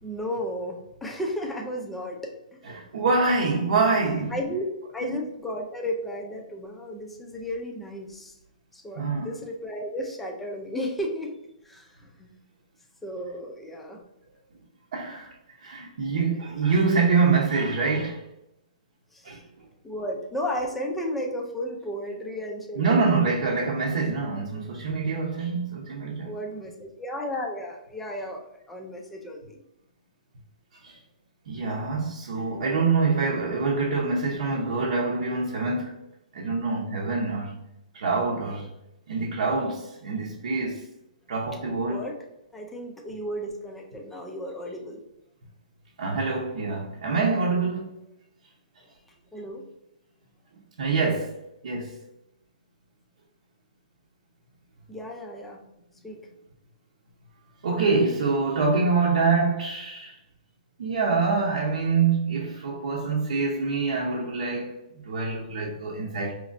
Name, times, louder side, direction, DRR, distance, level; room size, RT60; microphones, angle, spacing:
voice 1, 0.0-3.0 4.3-4.7 4.9-8.4 8.7-11.3 11.6-12.4 13.0-14.0 19.1-19.4 19.8-23.4 26.2-29.6 41.9-42.2 42.5-45.0 49.3-49.6 54.9-55.6 56.0-56.2, equal, 5° left, 0.4 m, -34 dB
voice 2, 2.7-4.4 5.0-5.1 9.0-9.3 14.9-15.3 15.6-18.2 19.2-19.4 22.7-26.3 30.7-31.0 31.5-36.0 36.3-37.6 37.9-38.7 39.1-40.9 41.3-42.0 46.0-48.0 50.8-51.4 51.6-52.0 57.6-60.2 60.8-66.3, right 4 dB, 65° right, 0.8 m, -25 dB
5.1 x 3.0 x 2.5 m
hypercardioid pair, 170°, 4 cm